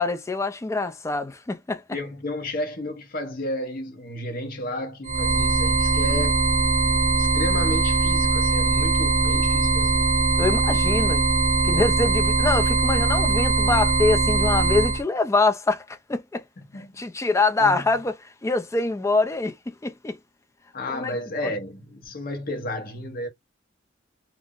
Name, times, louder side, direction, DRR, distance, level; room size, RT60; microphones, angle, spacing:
voice 1, 0.0-1.8 10.4-11.3 11.6-16.4 17.0-20.2 20.9-21.2, left 3 dB, 15° left, 0.3 m, -24 dB
voice 2, 1.9-6.4 6.8-10.0 11.7-12.0 16.6-17.0 17.6-17.9 20.7-23.3, left 1 dB, 50° left, 0.8 m, -32 dB
sound 1, 5.0-15.0, right 3 dB, 45° right, 0.8 m, -21 dB
2.4 x 2.0 x 3.5 m
head